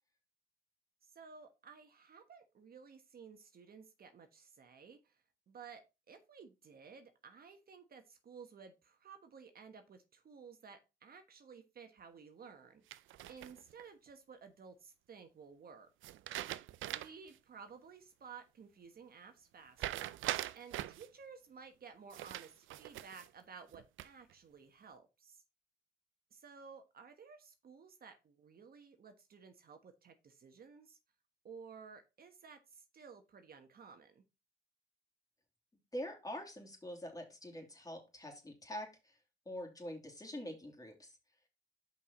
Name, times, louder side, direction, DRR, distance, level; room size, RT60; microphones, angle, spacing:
voice 1, 1.1-16.1 16.9-25.4 26.3-31.0 31.4-34.2, right 6 dB, 50° right, 6 dB, 1.3 m, -55 dB
sound 1, 12.9-13.8 16.0-17.3 17.7-17.8 19.8-21.1 22.1-23.3 23.7-24.3, right 14 dB, 80° right, 0.5 m, -42 dB
voice 2, 35.9-39.2 39.4-41.2, equal, 20° left, 1 dB, 2.9 m, -45 dB
5.6 x 4.7 x 5.8 m, 0.27 s
cardioid pair, 90°, 20 cm